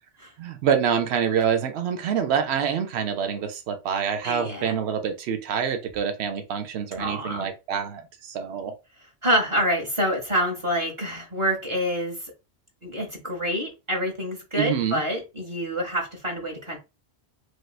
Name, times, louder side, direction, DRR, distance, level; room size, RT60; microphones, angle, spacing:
voice 1, 0.4-8.7 14.6-15.0, right 7 dB, 75° right, 0.9 m, -26 dB
voice 2, 4.2-4.8 7.0-7.5 9.2-12.3 12.8-16.8, equal, 30° right, 0.9 m, -27 dB
3.1 x 2.7 x 2.3 m
omnidirectional pair, 1.1 m